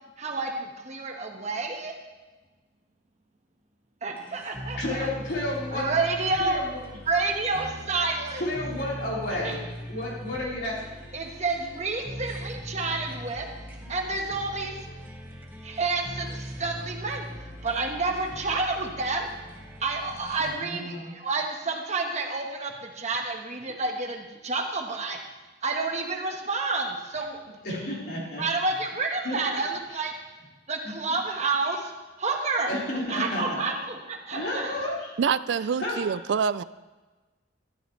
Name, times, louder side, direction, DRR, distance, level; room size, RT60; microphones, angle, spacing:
voice 1, 0.2-1.9 4.0-5.1 5.7-6.6 7.1-8.4 9.4-9.6 11.1-13.5 13.9-14.9 15.6-17.3 17.6-19.3 19.8-25.2 25.6-27.4 28.4-30.1 30.7-31.9 32.2-32.7 33.1-34.8, right 3 dB, 40° right, 2 dB, 1.3 m, -29 dB
sound 1, 4.2-20.5, equal, 15° right, 1.8 m, -41 dB
voice 2, 4.7-5.9 6.4-6.8 8.4-10.8 20.4-21.1 27.6-28.4 29.2-29.5 30.8-30.9 32.7-33.6 34.3-35.2 35.8-36.0, left 1 dB, 60° left, -6 dB, 4.2 m, -31 dB
voice 3, 35.2-36.6, right 6 dB, 70° right, 16 dB, 0.4 m, -26 dB
13.5 x 13.0 x 3.2 m, 1.2 s
head